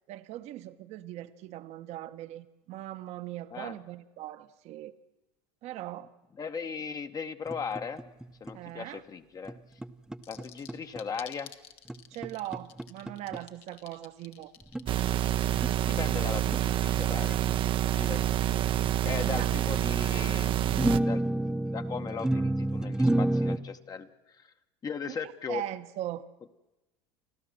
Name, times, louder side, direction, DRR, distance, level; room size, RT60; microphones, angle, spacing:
voice 1, 0.1-4.9 5.6-6.1 8.5-9.0 12.1-14.5 19.2-19.5 25.1-26.2, right 14 dB, 55° right, 11 dB, 1.1 m, -40 dB
voice 2, 6.4-8.0 8.4-9.6 10.3-11.5 15.8-17.4 18.0-18.3 19.0-21.2 21.7-24.5 24.8-25.6, left 6 dB, 30° left, 8 dB, 1.0 m, -38 dB
sound 1, 7.5-8.5 9.5-9.6 9.8-11.0 11.9-13.4 14.6-14.8 15.6-15.7 16.5-16.6 19.2-19.5 20.7-23.6, right 1 dB, 5° right, 0.8 m, -29 dB
sound 2, 10.2-15.8, left 11 dB, 75° left, 1.5 m, -50 dB
sound 3, 14.9-21.0, right 11 dB, 40° right, 0.7 m, -27 dB
29.5 x 12.5 x 7.7 m, 1.0 s
supercardioid pair, 105°, 13 cm